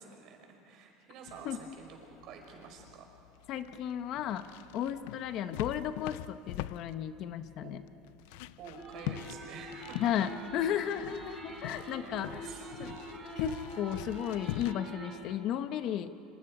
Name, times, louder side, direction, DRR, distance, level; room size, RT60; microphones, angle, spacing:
voice 1, 0.0-3.0 7.6-7.8 8.6-10.3 12.0-12.7 13.0-13.2, right 6 dB, 50° right, 2 dB, 4.7 m, -49 dB
sound 1, 1.3-14.7, left 16 dB, 75° left, 0.4 m, -44 dB
voice 2, 3.5-4.4 4.7-7.8 10.0-12.4 12.8-12.9 13.4-16.1, left 10 dB, 45° left, 11 dB, 0.8 m, -34 dB
sound 2, 8.8-15.2, right 2 dB, 20° right, 6.5 m, -45 dB
27.5 x 26.0 x 4.9 m, 2.7 s
cardioid pair, 155°, 0 cm